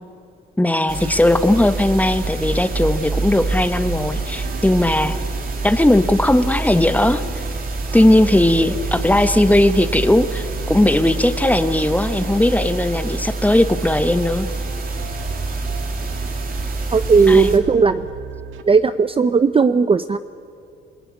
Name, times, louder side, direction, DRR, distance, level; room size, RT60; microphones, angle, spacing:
voice 1, 0.6-5.2 5.6-7.2 7.9-14.5 17.3-17.5, left 1 dB, 10° left, 10 dB, 1.3 m, -17 dB
sound 1, 0.9-17.6, right 3 dB, 45° right, 3.3 m, -26 dB
sound 2, 3.5-18.6, right 6 dB, 80° right, 1.7 m, -37 dB
voice 2, 16.9-18.0 18.7-20.2, right 5 dB, 30° right, 12 dB, 0.6 m, -15 dB
27.0 x 18.0 x 9.7 m, 2.4 s
cardioid pair, 90°, 20 cm